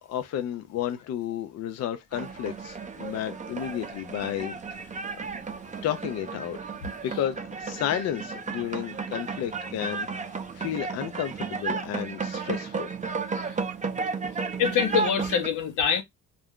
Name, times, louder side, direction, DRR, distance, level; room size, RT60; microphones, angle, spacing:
voice 1, 0.0-5.0 5.8-6.6 7.0-12.9, left 10 dB, 60° left, 0.4 m, -32 dB
Walking Past Demonstration (Sri Lanka), 2.1-15.5, right 4 dB, 25° right, 0.5 m, -33 dB
voice 2, 14.6-16.0, left 7 dB, 85° left, 0.8 m, -24 dB
2.4 x 2.1 x 3.5 m
cardioid pair, 90°, 30 cm